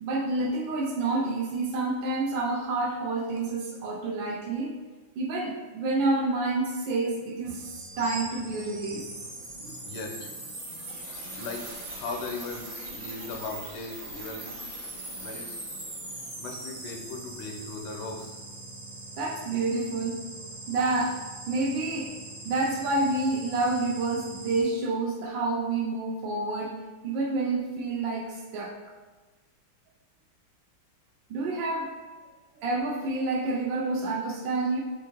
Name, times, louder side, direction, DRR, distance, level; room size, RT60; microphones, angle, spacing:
voice 1, 0.0-4.7 5.2-9.1 9.6-9.8 19.2-20.2 20.7-21.2 21.5-22.1 22.4-28.8 31.3-31.9 32.6-34.8, right 2 dB, 75° right, 0 dB, 1.1 m, -28 dB
sound 1, 7.4-24.6, right 2 dB, 45° right, 1.1 m, -41 dB
voice 2, 9.9-10.3 11.4-14.6 15.2-15.6 16.4-18.4, left 3 dB, 75° left, 3 dB, 1.3 m, -38 dB
4.9 x 2.5 x 2.9 m, 1.3 s
omnidirectional pair, 2.4 m